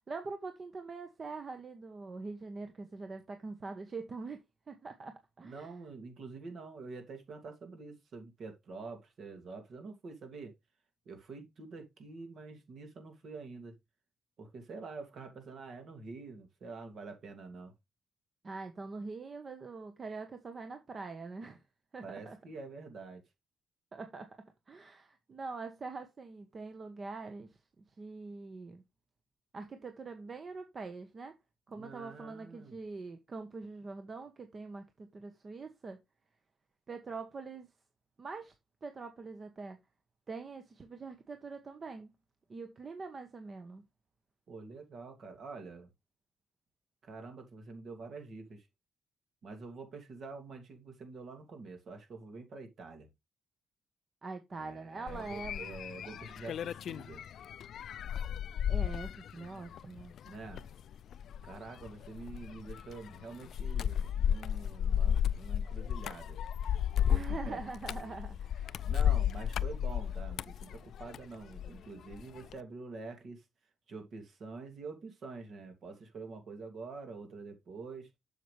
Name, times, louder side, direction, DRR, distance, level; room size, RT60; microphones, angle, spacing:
voice 1, 0.1-4.4 4.7-5.7 18.4-21.6 21.9-22.4 23.9-28.8 29.5-31.3 31.7-36.0 36.9-37.7 38.2-38.5 38.8-39.8 40.3-42.1 42.5-43.8 54.2-55.7 56.0-56.3 58.7-60.1 67.1-68.9, right 4 dB, 35° right, 1.1 m, -44 dB
voice 2, 5.4-10.5 11.0-13.8 14.4-17.7 22.0-23.2 31.7-32.8 44.5-45.9 47.0-48.7 49.4-53.1 54.5-57.3 60.2-60.7 61.4-66.4 67.0-67.6 68.8-73.4 73.9-78.1, right 4 dB, 60° right, 2.7 m, -46 dB
sound 1, 55.1-71.8 72.1-72.6, left 9 dB, 65° left, 0.3 m, -33 dB
7.5 x 6.8 x 3.3 m
cardioid pair, 90°, 0 cm